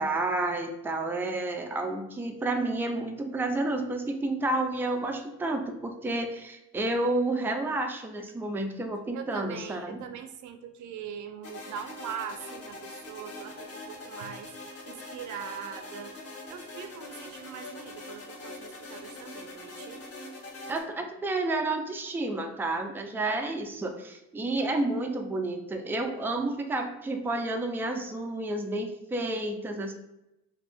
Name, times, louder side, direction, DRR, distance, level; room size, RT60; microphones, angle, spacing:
voice 1, 0.0-10.1 20.7-29.9, right 2 dB, 5° right, 4 dB, 0.4 m, -30 dB
voice 2, 9.1-14.5 14.9-16.1 16.5-20.0, right 8 dB, 70° right, 8 dB, 0.5 m, -41 dB
sound 1, 11.4-20.8, left 2 dB, 50° left, 1.0 m, -43 dB
2.9 x 2.6 x 3.5 m, 0.88 s
cardioid pair, 90°, 30 cm